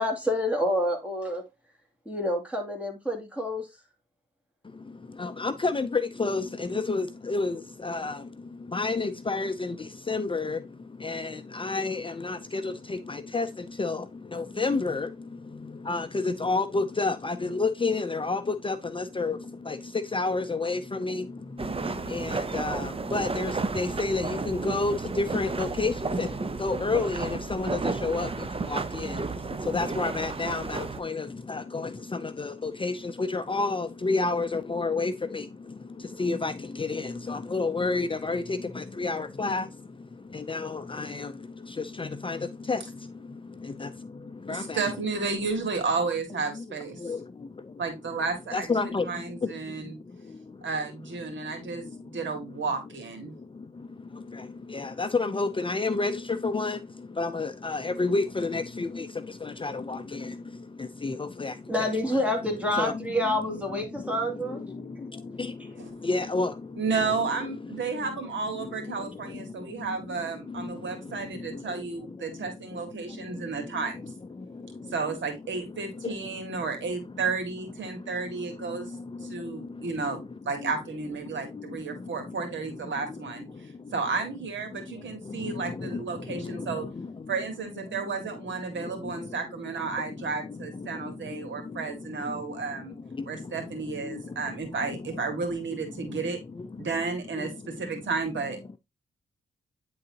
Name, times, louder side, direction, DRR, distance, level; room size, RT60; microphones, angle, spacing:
voice 1, 0.0-1.4 2.1-3.7 61.7-64.6, left 1 dB, 5° right, 2.6 m, -28 dB
voice 2, 4.6-45.0 46.5-46.7 47.0-47.8 48.5-50.7 51.3-52.6 53.3-62.2 62.7-68.3 68.5-75.2 75.5-76.6 77.1-77.2 77.8-80.3 80.6-80.7 81.2-83.2 83.5-84.0 84.7-87.4 87.8-98.0, left 3 dB, 25° left, 0.6 m, -32 dB
sound 1, 21.6-31.0, right 3 dB, 30° right, 0.8 m, -32 dB
voice 3, 44.5-47.0 47.8-50.0 50.6-53.3 65.8-65.9 66.8-74.1 74.9-78.9 79.2-83.5 83.9-86.9 87.3-92.9 93.3-96.4 96.8-98.6, right 4 dB, 70° right, 2.1 m, -32 dB
9.3 x 3.9 x 2.9 m
cardioid pair, 60°, 20 cm